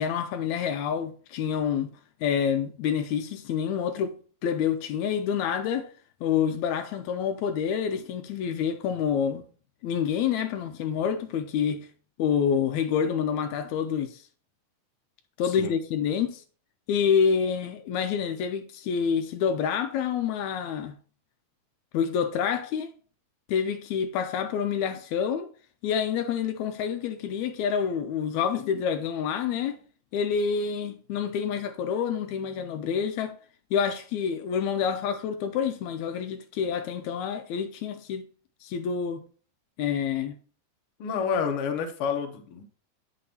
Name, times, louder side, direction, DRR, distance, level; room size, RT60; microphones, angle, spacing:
voice 1, 0.0-1.9 2.2-5.9 6.2-9.5 9.8-11.9 12.2-14.2 15.4-16.4 16.9-21.0 21.9-22.9 23.5-25.5 25.8-29.8 30.1-33.4 33.7-38.3 38.6-39.2 39.8-40.4, left 7 dB, 80° left, 1.9 m, -27 dB
voice 2, 41.0-42.6, left 6 dB, 65° left, 1.7 m, -29 dB
8.5 x 6.1 x 2.8 m
omnidirectional pair, 3.3 m